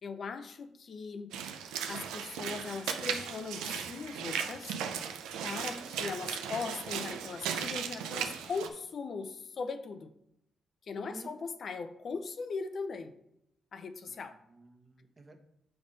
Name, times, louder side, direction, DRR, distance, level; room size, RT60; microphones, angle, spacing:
voice 1, 0.0-1.3 1.9-4.8 5.4-10.1 10.8-13.1 13.7-14.4, left 4 dB, 55° left, 9 dB, 0.6 m, -39 dB
Walk footsteps / Splash splatter, 1.3-8.7, right 7 dB, 85° right, 0.5 m, -37 dB
voice 2, 10.9-11.4 14.1-15.4, right 2 dB, 30° right, 6 dB, 1.1 m, -52 dB
6.9 x 3.5 x 5.3 m, 0.77 s
supercardioid pair, 60°, 0 cm